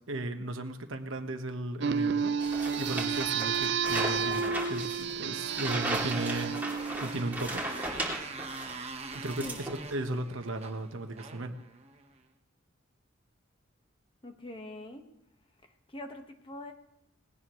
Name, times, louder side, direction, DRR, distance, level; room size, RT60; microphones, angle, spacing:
voice 1, 0.1-2.3 2.8-7.6 9.1-11.5, right 1 dB, 75° right, 6 dB, 1.3 m, -36 dB
sound 1, 1.8-7.8, right 6 dB, 60° right, 0.5 m, -31 dB
sound 2, 2.4-8.8 9.1-10.1, right 1 dB, 10° right, 2.7 m, -37 dB
Motorcycle, 5.7-12.2, right 4 dB, 30° right, 1.0 m, -44 dB
voice 2, 14.2-15.1 15.9-16.7, left 1 dB, 25° left, 4 dB, 1.4 m, -42 dB
19.5 x 17.0 x 3.1 m, 0.85 s
head